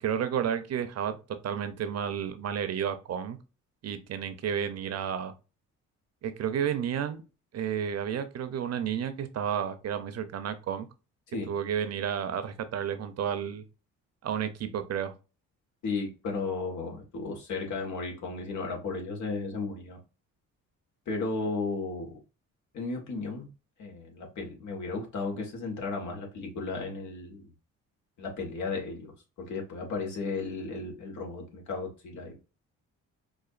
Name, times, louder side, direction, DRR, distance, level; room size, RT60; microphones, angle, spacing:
voice 1, 0.0-1.2 1.4-3.4 3.8-5.3 6.2-7.2 7.5-10.9 11.5-13.6 14.2-15.1, right 8 dB, 55° right, 0.7 m, -31 dB
voice 2, 15.8-20.0 21.1-22.1 22.7-23.5 23.8-27.5 28.2-29.1 29.4-32.3, left 3 dB, 70° left, 1.6 m, -34 dB
4.9 x 2.5 x 2.5 m
cardioid pair, 90°, 30 cm